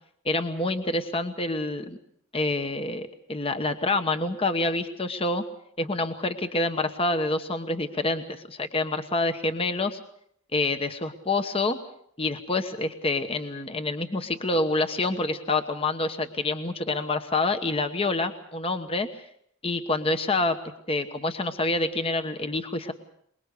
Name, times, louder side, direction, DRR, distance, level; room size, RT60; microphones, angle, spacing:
voice 1, 0.2-2.0 2.3-5.4 5.8-10.0 10.5-11.8 12.2-19.1 19.6-20.6 20.9-22.9, left 2 dB, 25° left, 8 dB, 1.1 m, -27 dB
24.0 x 21.5 x 6.8 m, 0.68 s
head